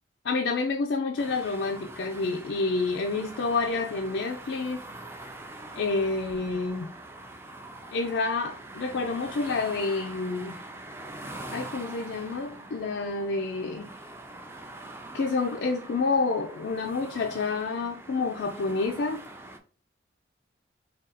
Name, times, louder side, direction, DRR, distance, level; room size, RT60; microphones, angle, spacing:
voice 1, 0.2-4.8 5.8-6.9 7.9-10.6 11.5-13.9 15.1-19.2, left 3 dB, 70° left, 0.4 m, -28 dB
sound 1, 1.2-19.6, right 2 dB, 15° right, 0.3 m, -43 dB
3.7 x 2.3 x 4.0 m
head